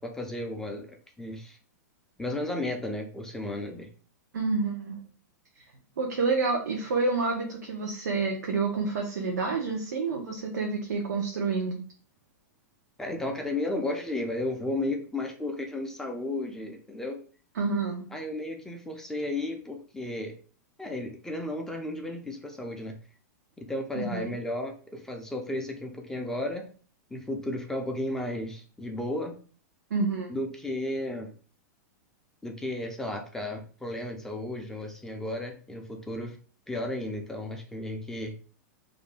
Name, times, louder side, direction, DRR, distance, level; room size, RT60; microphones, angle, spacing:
voice 1, 0.0-1.6 2.2-3.9 13.0-17.2 18.1-20.3 20.8-23.0 23.6-26.7 27.1-29.4 30.3-31.3 32.4-36.4 36.7-38.4, left 1 dB, 5° left, 2 dB, 0.4 m, -34 dB
voice 2, 4.3-5.0 6.0-11.8 17.6-18.1 23.9-24.3 29.9-30.4, right 4 dB, 90° right, 0 dB, 0.6 m, -28 dB
2.5 x 2.1 x 3.2 m, 0.40 s
hypercardioid pair, 135°, 9 cm